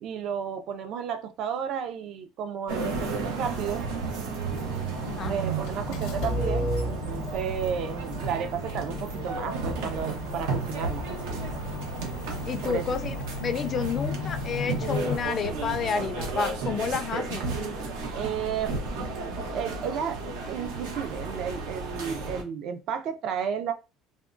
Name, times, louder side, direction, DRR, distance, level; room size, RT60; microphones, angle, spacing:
voice 1, 0.0-3.8 5.2-11.0 12.6-12.9 18.1-18.8 19.5-20.2 20.5-23.7, right 7 dB, 55° right, 0.5 m, -32 dB
sound 1, 2.7-22.4, right 4 dB, 90° right, 0.9 m, -33 dB
sound 2, 4.5-15.2, left 3 dB, 80° left, 0.7 m, -35 dB
voice 2, 12.5-17.5, left 6 dB, 35° left, 0.3 m, -30 dB
3.5 x 2.2 x 2.5 m
cardioid pair, 130°, 0 cm